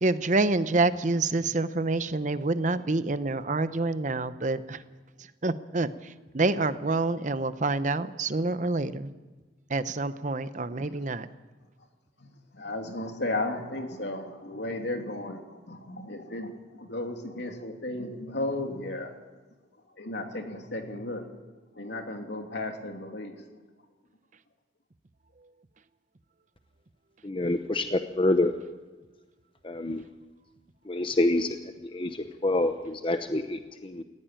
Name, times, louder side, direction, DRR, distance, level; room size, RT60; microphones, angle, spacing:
voice 1, 0.0-4.8 5.4-5.9 6.3-9.1 9.7-11.3, right 2 dB, 40° right, 13 dB, 0.8 m, -27 dB
voice 2, 10.5-10.9 12.2-19.1 20.0-21.3 21.7-23.4, left 2 dB, 70° left, 3 dB, 2.9 m, -35 dB
voice 3, 27.2-28.5 29.6-30.0 30.8-34.0, left 2 dB, 30° left, 8 dB, 0.8 m, -27 dB
19.5 x 16.0 x 9.1 m, 1.2 s
head